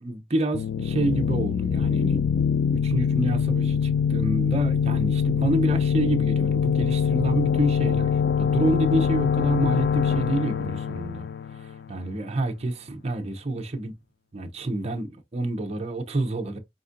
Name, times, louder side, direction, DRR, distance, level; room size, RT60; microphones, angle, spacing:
voice 1, 0.0-2.2 2.7-11.3 11.6-13.9 14.3-16.6, right 2 dB, 35° right, 0.6 m, -28 dB
sound 1, 0.5-12.1, left 7 dB, 65° left, 0.3 m, -24 dB
4.4 x 3.9 x 2.5 m
head